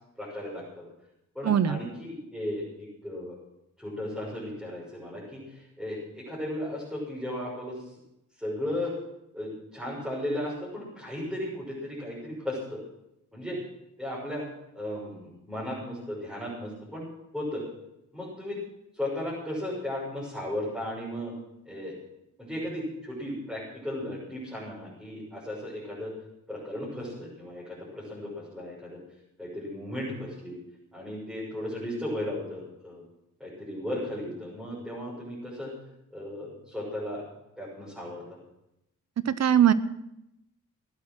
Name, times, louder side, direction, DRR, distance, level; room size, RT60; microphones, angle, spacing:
voice 1, 0.2-0.8 1.3-3.4 3.8-7.8 8.4-8.9 9.3-12.8 13.3-13.6 14.0-14.5 14.7-17.0 17.3-17.6 18.1-18.6 18.9-21.3 21.6-21.9 22.4-26.1 26.5-29.0 29.4-30.6 30.9-33.0 33.4-35.7 36.1-37.2 37.6-38.2, left 1 dB, ahead, -9 dB, 6.5 m, -35 dB
voice 2, 1.4-1.8 39.3-39.7, right 9 dB, 55° right, 15 dB, 0.9 m, -21 dB
16.5 x 11.0 x 6.2 m, 0.84 s
cardioid pair, 95°, 31 cm